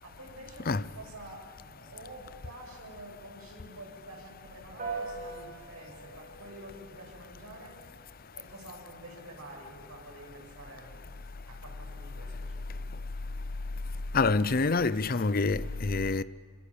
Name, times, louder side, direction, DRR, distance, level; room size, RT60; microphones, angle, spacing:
voice 1, 0.0-0.7 0.9-7.7 8.3-11.1 11.5-12.8, right 1 dB, 85° right, 6.9 m, -48 dB
Piano, 4.8-14.5, right 4 dB, 35° right, 6.9 m, -47 dB
voice 2, 14.1-16.2, left 3 dB, 40° left, 0.6 m, -26 dB
26.0 x 25.5 x 8.5 m
head